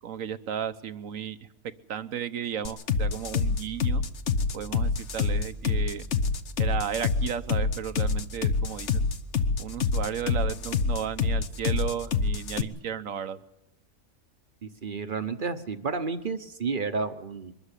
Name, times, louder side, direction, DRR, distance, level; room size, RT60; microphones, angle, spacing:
voice 1, 0.0-1.5 1.9-4.0 4.5-6.1 6.6-9.0 9.6-13.4, right 8 dB, 70° right, 12 dB, 1.3 m, -34 dB
sound 1, 2.6-12.6, left 4 dB, 55° left, 1.3 m, -26 dB
voice 2, 14.6-17.5, right 4 dB, 40° right, 10 dB, 1.0 m, -31 dB
23.0 x 13.5 x 9.9 m, 0.89 s
omnidirectional pair, 1.5 m